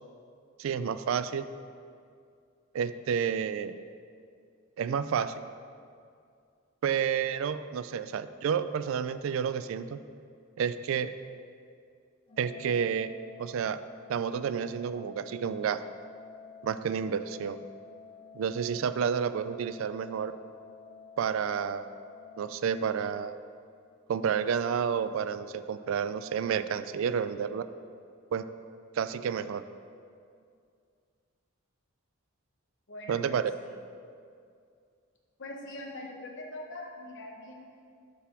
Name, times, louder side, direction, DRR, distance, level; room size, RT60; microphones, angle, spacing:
voice 1, 0.6-1.4 2.7-3.7 4.8-5.4 6.8-10.0 10.6-11.1 12.4-13.1 13.4-13.8 14.1-15.8 16.6-17.6 18.3-20.3 21.2-21.9 22.4-23.4 24.1-27.6 28.3-28.4 28.9-29.6 33.1-33.5, right 7 dB, 65° right, 13 dB, 0.3 m, -30 dB
Organ, 12.3-23.3, left 6 dB, 25° left, 0.4 m, -51 dB
voice 2, 32.9-33.7 35.4-37.5, left 1 dB, 60° left, 0 dB, 1.0 m, -42 dB
6.8 x 4.7 x 6.0 m, 2.3 s
head